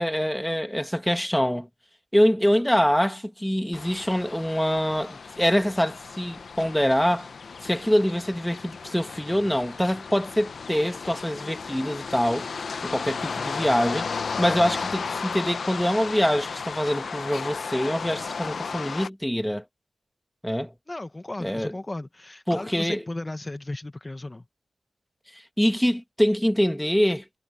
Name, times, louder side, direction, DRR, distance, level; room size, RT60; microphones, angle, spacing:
voice 1, 0.0-1.7 2.1-7.3 7.6-12.5 12.8-14.1 14.4-19.6 20.4-20.7 21.4-21.7 22.5-23.0 25.3-27.4, equal, 5° left, 1.4 m, -24 dB
sound 1, 3.7-19.1, left 5 dB, 70° left, 0.9 m, -34 dB
voice 2, 20.9-24.4, left 2 dB, 25° left, 1.3 m, -35 dB
cardioid pair, 70°, 0 cm